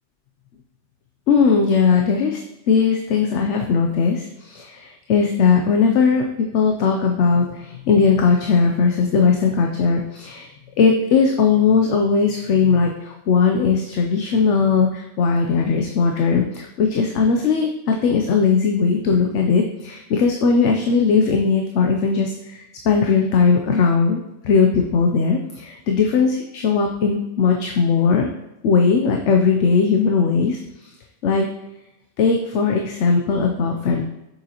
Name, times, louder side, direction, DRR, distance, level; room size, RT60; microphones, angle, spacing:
voice 1, 1.3-2.4 2.7-6.2 6.5-7.5 7.9-10.5 10.8-22.3 22.9-24.2 24.4-28.3 28.6-30.6 31.2-31.5 32.2-34.0, left 5 dB, 70° left, 2 dB, 0.9 m, -18 dB
6.9 x 6.6 x 2.9 m, 0.92 s
omnidirectional pair, 1.3 m